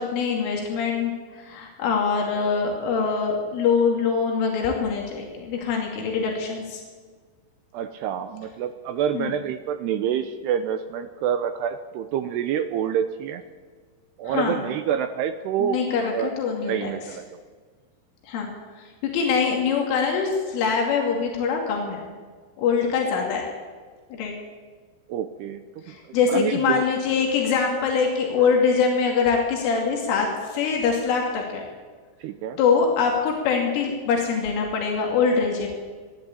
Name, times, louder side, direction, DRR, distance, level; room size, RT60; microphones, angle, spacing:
voice 1, 0.0-6.8 9.1-9.3 14.3-14.6 15.6-16.9 18.3-18.5 18.8-22.1 22.6-23.4 24.1-24.3 25.9-31.6 32.6-35.7, left 5 dB, 90° left, 0 dB, 5.1 m, -23 dB
voice 2, 7.7-13.4 14.2-16.3 16.6-17.3 25.1-25.6 25.9-26.8 28.4-28.5 32.2-32.6, right 9 dB, 80° right, 9 dB, 2.5 m, -27 dB
27.5 x 11.5 x 8.6 m, 1.5 s
omnidirectional pair, 5.5 m